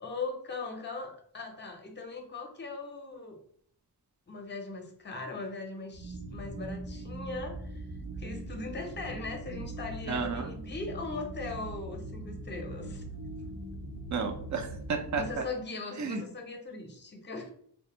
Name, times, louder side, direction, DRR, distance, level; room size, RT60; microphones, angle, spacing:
voice 1, 0.0-3.4 4.3-7.9 8.2-13.0 15.1-17.5, left 3 dB, 25° left, 4 dB, 0.6 m, -39 dB
sound 1, 5.9-15.3, right 1 dB, 85° right, 0.7 m, -41 dB
voice 2, 10.1-10.5 14.1-15.5 16.0-16.2, right 5 dB, 45° right, 7 dB, 0.5 m, -32 dB
2.4 x 2.2 x 2.9 m, 0.63 s
cardioid pair, 60°, 41 cm